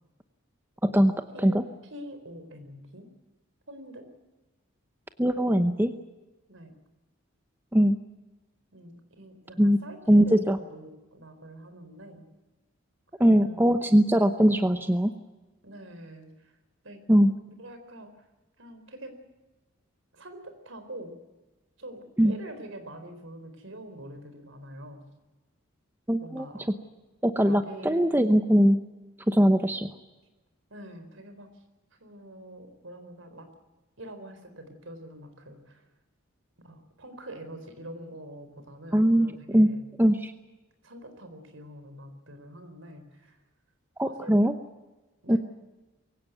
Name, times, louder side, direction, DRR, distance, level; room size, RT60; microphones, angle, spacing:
voice 1, 0.8-1.1 1.4-1.6 5.2-5.9 7.7-8.0 9.6-9.8 10.1-10.6 13.2-15.1 17.1-17.3 22.2-22.3 26.1-26.5 27.2-28.8 29.3-29.9 38.9-39.7 40.0-40.3 44.0-44.5 45.3-45.4, equal, 10° right, 8 dB, 0.8 m, -21 dB
voice 2, 1.9-3.1 3.7-4.1 6.5-6.8 8.7-12.2 13.2-13.8 15.6-16.6 16.8-17.0 17.6-18.3 18.6-19.2 20.1-21.1 21.8-25.0 26.2-26.7 27.4-28.0 30.7-31.6 32.0-33.5 34.0-35.8 36.6-39.8 40.8-43.4 44.0-44.5 45.2-45.4, right 1 dB, 65° right, 8 dB, 4.3 m, -45 dB
23.5 x 16.5 x 9.3 m, 1.1 s
head